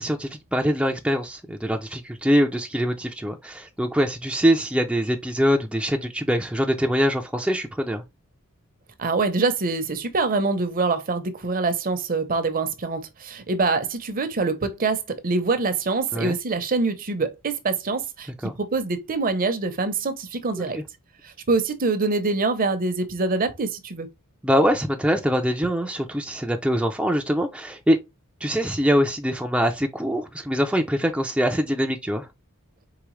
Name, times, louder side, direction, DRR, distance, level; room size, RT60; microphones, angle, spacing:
voice 1, 0.0-8.0 16.1-16.4 18.4-18.5 20.7-20.8 24.4-28.0 28.4-32.3, equal, 5° right, 0.4 m, -23 dB
voice 2, 9.0-20.8 21.2-24.1, right 3 dB, 40° right, 0.7 m, -25 dB
4.8 x 3.3 x 3.1 m
head